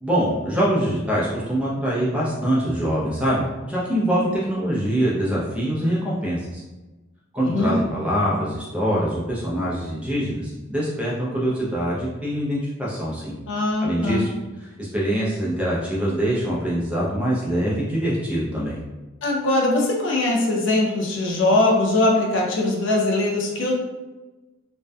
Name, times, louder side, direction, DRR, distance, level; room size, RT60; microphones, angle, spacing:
voice 1, 0.0-6.6 7.3-13.3 13.8-14.3 14.6-18.8, equal, 5° right, -7 dB, 0.4 m, -24 dB
voice 2, 13.5-14.3 19.2-23.7, left 2 dB, 60° left, -1 dB, 0.4 m, -21 dB
2.6 x 2.1 x 2.2 m, 1.1 s
head